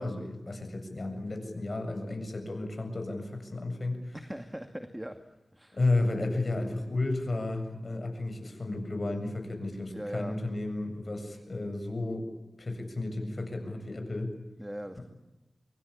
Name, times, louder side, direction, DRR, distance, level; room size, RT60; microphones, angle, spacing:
voice 1, 0.0-4.2 5.7-12.3 12.6-14.3 15.0-15.1, left 2 dB, 50° left, 5 dB, 7.6 m, -33 dB
voice 2, 4.1-5.2 5.5-5.8 9.9-10.4 14.6-15.0, equal, 10° right, 7 dB, 2.2 m, -39 dB
25.0 x 23.5 x 8.8 m, 1.1 s
cardioid pair, 50°, 0 cm